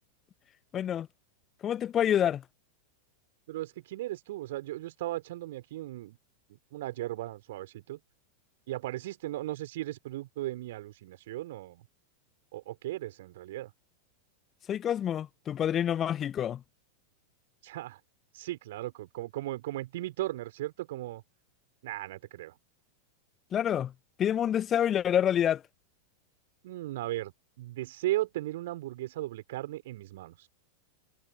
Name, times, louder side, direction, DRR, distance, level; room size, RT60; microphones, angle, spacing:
voice 1, 0.7-1.1 1.6-2.4 14.7-16.6 23.5-23.9 24.2-25.6, left 10 dB, 25° left, 1.8 m, -27 dB
voice 2, 3.5-6.2 6.7-8.0 8.7-11.8 12.5-13.7 17.6-18.0 18.3-21.2 21.8-22.5 26.6-27.3 27.6-30.4, right 15 dB, 55° right, 5.1 m, -36 dB
figure-of-eight pair, 90°, 0 cm